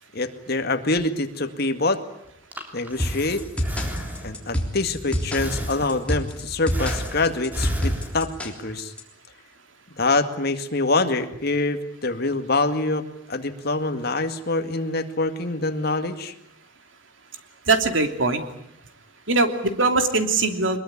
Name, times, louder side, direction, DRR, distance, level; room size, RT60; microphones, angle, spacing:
voice 1, 0.1-2.0 2.7-3.4 4.2-8.9 10.0-16.3, left 2 dB, 50° left, 8 dB, 2.1 m, -25 dB
Breathing, 2.3-4.6 5.4-6.3 6.7-8.5, equal, 10° right, 3.3 m, -32 dB
sound 1, 3.0-9.0, equal, 5° left, 3.5 m, -28 dB
voice 2, 17.7-18.4 19.3-20.8, right 3 dB, 70° right, 7 dB, 3.0 m, -21 dB
23.5 x 22.0 x 9.8 m, 0.73 s
head